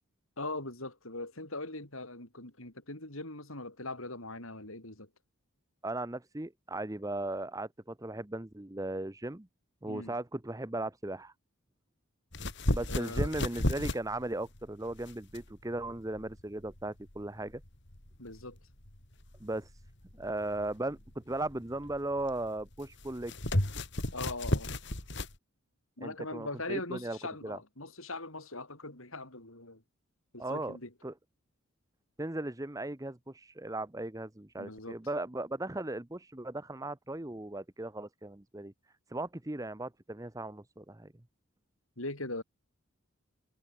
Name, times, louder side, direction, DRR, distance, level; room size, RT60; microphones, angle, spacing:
voice 1, 0.4-5.1 9.9-10.1 12.9-13.3 18.2-18.6 24.1-24.7 26.0-29.8 30.3-30.9 34.6-35.0 42.0-42.4, left 2 dB, 70° left, 6.9 m, -40 dB
voice 2, 5.8-9.5 9.8-11.3 12.7-17.6 19.4-19.8 20.1-23.3 26.0-27.6 30.4-30.8 31.0-31.1 32.2-38.7 39.1-41.1, right 2 dB, 15° right, 0.8 m, -37 dB
sound 1, 12.3-25.4, left 1 dB, 55° left, 3.4 m, -35 dB
head